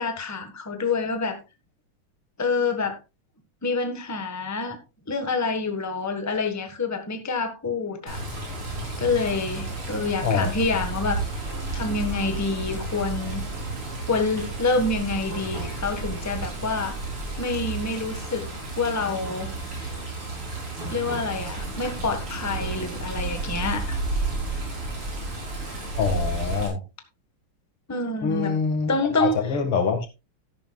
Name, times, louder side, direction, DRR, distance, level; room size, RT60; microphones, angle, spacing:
voice 1, 0.0-1.4 2.4-3.0 3.6-4.8 5.1-8.2 9.0-11.2 11.7-13.4 14.1-17.0 17.4-18.4 18.7-19.5 20.9-24.0 27.9-28.5 28.9-29.4, left 3 dB, 10° left, 1.2 m, -27 dB
Water, 8.1-26.7, right 2 dB, 90° right, 4.7 m, -32 dB
voice 2, 26.0-26.8 28.2-28.9 29.2-30.1, left 5 dB, 85° left, 2.8 m, -24 dB
13.0 x 11.0 x 2.3 m
omnidirectional pair, 2.3 m